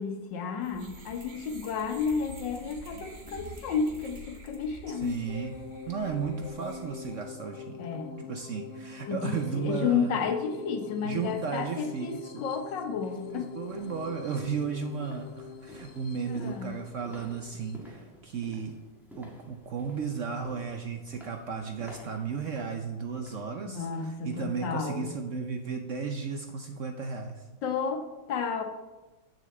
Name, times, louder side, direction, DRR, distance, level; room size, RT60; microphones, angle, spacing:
voice 1, 0.0-5.2 7.8-8.2 9.1-13.6 16.3-16.7 23.7-25.1 27.6-28.6, left 6 dB, 85° left, 6 dB, 1.7 m, -32 dB
sound 1, 0.6-7.3, right 2 dB, 35° right, 1.0 m, -47 dB
voice 2, 4.9-5.5 5.9-7.9 8.3-10.1 11.0-12.4 13.3-18.8 19.2-27.5, right 6 dB, 65° right, 5 dB, 0.8 m, -34 dB
sound 2, 5.3-17.8, left 6 dB, 55° left, 0.7 m, -44 dB
sound 3, 13.0-24.1 24.5-24.8 25.2-25.3, equal, ahead, 1.5 m, -52 dB
6.9 x 6.6 x 7.6 m, 1.2 s
omnidirectional pair, 1.9 m